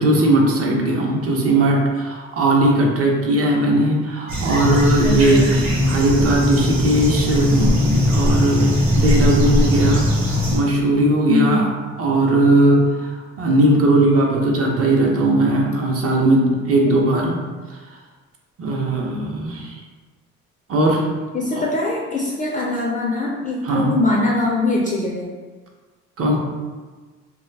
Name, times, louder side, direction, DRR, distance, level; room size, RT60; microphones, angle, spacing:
voice 1, 0.0-11.7 12.0-17.4 17.7-17.8 18.6-19.8 20.7-21.0 23.6-24.0 26.2-26.4, right 1 dB, 50° right, -1 dB, 0.7 m, -18 dB
sound 1, 4.3-10.6, equal, 70° right, 1.0 m, -19 dB
voice 2, 5.0-5.6 11.3-11.6 21.3-25.3, left 2 dB, 25° left, -3 dB, 0.4 m, -22 dB
2.3 x 2.2 x 3.2 m, 1.4 s
cardioid pair, 90°, 30 cm